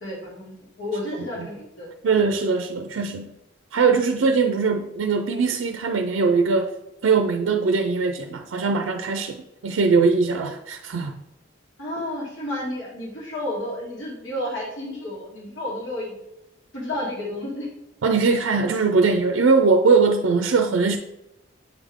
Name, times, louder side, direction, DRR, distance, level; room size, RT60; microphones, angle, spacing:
voice 1, 0.0-1.9 11.8-16.2 16.7-17.7, left 1 dB, 70° left, -4 dB, 1.9 m, -31 dB
voice 2, 2.0-3.3 3.7-6.7 7.0-11.1 18.0-21.0, right 4 dB, 85° right, 6 dB, 0.4 m, -21 dB
7.7 x 3.6 x 3.5 m, 0.88 s
head